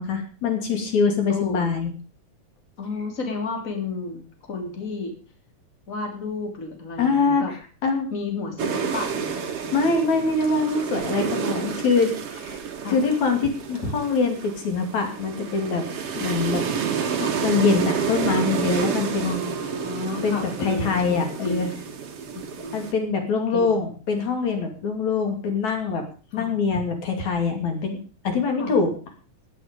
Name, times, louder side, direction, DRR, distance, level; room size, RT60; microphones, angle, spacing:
voice 1, 0.0-1.9 7.0-7.4 7.8-8.1 9.7-12.6 12.9-15.8 16.1-16.6 17.4-19.4 20.2-21.7 22.7-26.0 26.3-28.0 28.2-28.9, left 4 dB, 75° left, 4 dB, 4.0 m, -23 dB
voice 2, 1.3-1.8 2.8-4.2 4.5-5.1 5.9-7.5 8.1-10.0 12.8-13.0 17.2-17.3 19.2-21.8 22.3-22.8 23.5-23.9 26.3-26.5 28.6-28.7, left 3 dB, 25° left, 3 dB, 3.4 m, -32 dB
sound 1, 8.6-22.9, right 6 dB, 55° right, 2.7 m, -29 dB
16.0 x 11.5 x 5.2 m, 0.37 s
omnidirectional pair, 3.3 m